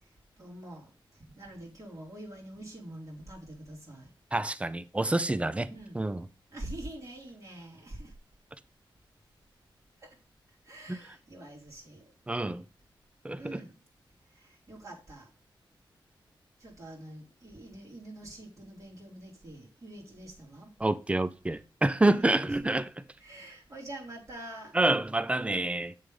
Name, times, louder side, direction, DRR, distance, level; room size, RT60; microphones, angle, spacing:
voice 1, 0.0-4.1 5.7-6.0 6.5-8.1 10.0-10.2 10.6-12.1 13.4-13.7 14.3-15.3 16.6-20.7 22.1-22.7 23.2-24.8, right 1 dB, 40° right, 3.1 m, -45 dB
voice 2, 4.3-5.7 6.0-6.2 10.9-11.0 12.3-12.6 13.2-13.6 20.8-22.9 24.7-25.9, right 2 dB, 15° right, 0.5 m, -27 dB
7.2 x 3.5 x 5.3 m
wide cardioid pair, 85°, 9 cm